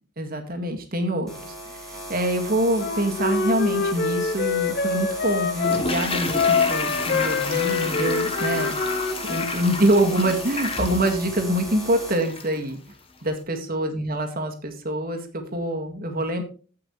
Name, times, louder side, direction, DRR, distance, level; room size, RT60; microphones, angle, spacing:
voice 1, 0.2-12.8 13.2-16.4, right 1 dB, 45° right, 4 dB, 1.8 m, -25 dB
sound 1, 1.3-12.1, equal, ahead, 3.4 m, -37 dB
Wind instrument woodwind instrument, 2.7-5.8 6.3-9.6, left 5 dB, 50° left, 0.7 m, -25 dB
Toilet flush, 5.6-12.6 12.9-13.0, left 3 dB, 25° left, 1.1 m, -31 dB
15.5 x 5.7 x 3.1 m, 0.38 s
head